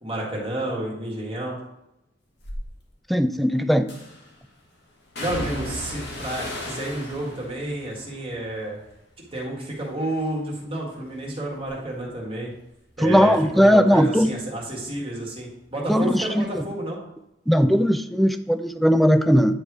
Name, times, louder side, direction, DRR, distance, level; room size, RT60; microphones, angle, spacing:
voice 1, 0.0-1.6 5.2-8.8 9.3-12.5 13.0-17.0, right 1 dB, 30° right, 1.9 m, -30 dB
sound 1, 2.4-2.6 3.9-4.3 5.2-9.4 9.7-10.3 10.7-14.0 14.3-15.4 15.7-15.8, left 1 dB, 60° left, 1.4 m, -37 dB
voice 2, 3.1-3.9 13.0-14.3 15.9-16.6 17.5-19.5, equal, ahead, 0.3 m, -18 dB
9.9 x 3.4 x 4.8 m
head